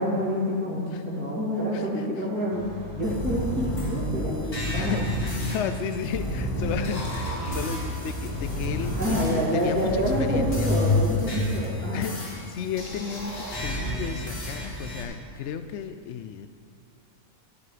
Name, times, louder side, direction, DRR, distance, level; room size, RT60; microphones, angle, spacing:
voice 1, 0.0-5.0 9.0-12.1, equal, 5° right, -8 dB, 2.7 m, -27 dB
voice 2, 1.7-2.3 4.7-10.7 11.9-16.5, left 7 dB, 65° left, 9 dB, 0.7 m, -34 dB
sound 1, 2.5-11.3, left 1 dB, 75° right, 1.7 m, -40 dB
sound 2, 3.0-15.0, left 1 dB, 80° left, 3.2 m, -30 dB
14.0 x 9.7 x 5.0 m, 2.5 s
omnidirectional pair, 1.6 m